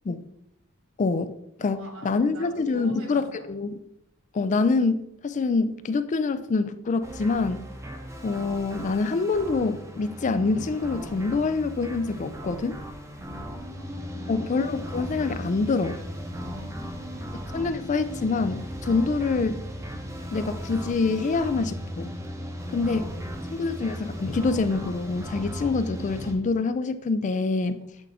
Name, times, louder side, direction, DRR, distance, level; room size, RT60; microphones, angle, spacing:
voice 1, 1.0-3.8 4.3-7.7 8.2-12.8 14.3-16.0 17.5-19.5 20.3-22.1 22.7-23.1 23.5-27.8, left 4 dB, 35° left, 12 dB, 0.3 m, -26 dB
voice 2, 1.6-3.6 7.8-8.1 13.2-14.6 16.3-17.5 18.8-19.1 22.6-23.4, left 1 dB, 70° right, 2 dB, 1.7 m, -43 dB
sound 1, 7.0-26.3, equal, 15° right, 0.7 m, -37 dB
8.2 x 3.6 x 3.4 m, 0.79 s
head